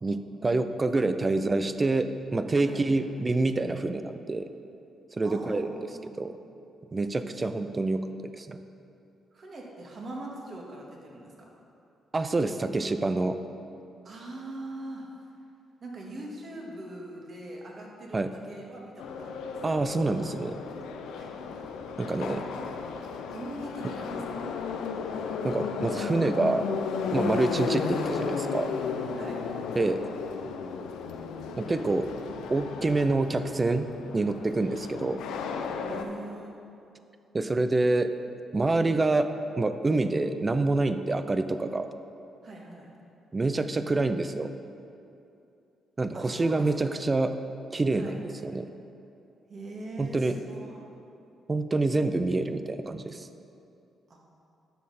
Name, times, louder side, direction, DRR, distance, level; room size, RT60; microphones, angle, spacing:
voice 1, 0.0-4.5 5.1-5.7 6.2-6.3 6.9-8.1 8.3-8.6 12.1-13.4 18.1-18.3 19.6-20.6 22.0-22.4 25.4-26.7 27.1-28.7 29.8-30.0 30.4-30.5 31.6-32.1 32.5-35.2 37.3-38.1 38.5-41.9 43.3-44.5 46.0-47.3 47.7-48.7 50.0-50.4 51.5-53.3, right 2 dB, 30° right, 10 dB, 0.5 m, -27 dB
voice 2, 5.2-6.2 7.3-7.4 9.3-11.5 14.0-15.1 15.8-19.6 21.1-21.3 22.5-22.7 23.3-24.2 27.3-27.5 29.2-29.4 35.9-36.5 42.4-42.9 46.1-47.1 47.9-48.2 49.5-50.8 54.1-54.2, right 1 dB, 50° right, -1 dB, 1.9 m, -42 dB
Subway metro underground, 19.0-36.0, left 5 dB, 80° left, 0.5 m, -34 dB
10.5 x 6.4 x 4.3 m, 2.7 s
supercardioid pair, 60°, 0 cm